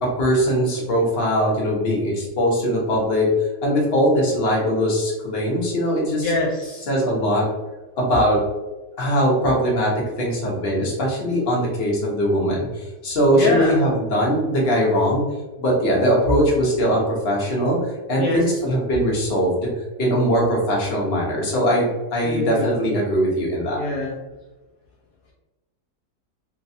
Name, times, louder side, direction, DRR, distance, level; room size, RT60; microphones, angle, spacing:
voice 1, 0.0-3.3 3.6-6.3 6.9-7.4 8.0-8.4 9.0-15.2 15.6-19.7 20.0-23.8, equal, 40° left, -3 dB, 1.0 m, -21 dB
voice 2, 6.2-6.9 13.3-13.8 18.2-18.6 22.2-22.7 23.7-24.1, left 2 dB, 70° left, -1 dB, 0.8 m, -24 dB
3.3 x 3.0 x 2.7 m, 1.1 s
omnidirectional pair, 1.9 m